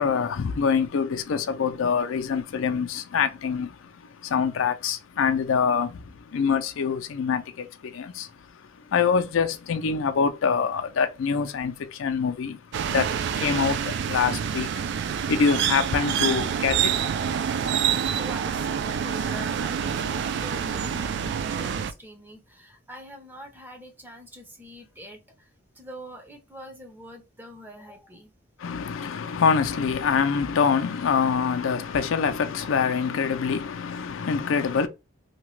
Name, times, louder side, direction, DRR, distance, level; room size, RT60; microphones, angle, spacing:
voice 1, 0.0-17.4 28.6-34.9, left 6 dB, 90° left, 0.4 m, -25 dB
sound 1, 12.7-21.9, right 8 dB, 60° right, 0.3 m, -27 dB
voice 2, 18.1-25.2 25.8-28.3, equal, 10° right, 0.6 m, -44 dB
2.8 x 2.2 x 3.1 m
head